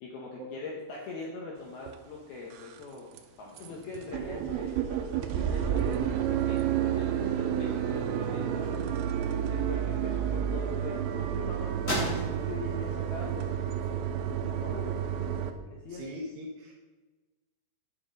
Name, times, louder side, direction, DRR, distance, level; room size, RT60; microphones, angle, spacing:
voice 1, 0.0-3.1 3.4-8.7 9.5-13.5 14.3-15.4 15.7-16.1, left 3 dB, 75° left, -2 dB, 2.3 m, -42 dB
sound 1, 1.2-10.5 11.0-13.4 13.8-15.3, left 1 dB, 30° left, 1.1 m, -42 dB
sound 2, 1.9-2.0 2.5-2.8 3.2-3.3 3.6-3.7 3.9-15.5, right 9 dB, 85° right, 3.2 m, -30 dB
voice 2, 15.9-16.8, equal, 70° right, -1 dB, 2.7 m, -40 dB
9.5 x 8.2 x 5.2 m, 1.2 s
omnidirectional pair, 6.0 m